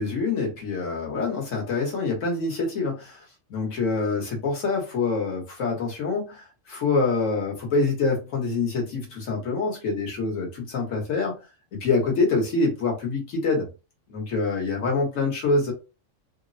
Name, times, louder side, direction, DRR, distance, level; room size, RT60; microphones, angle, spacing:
voice 1, 0.0-3.2 3.5-11.3 11.7-13.7 14.1-15.7, left 3 dB, 85° left, 1.5 m, -26 dB
3.4 x 2.0 x 2.6 m
omnidirectional pair, 1.3 m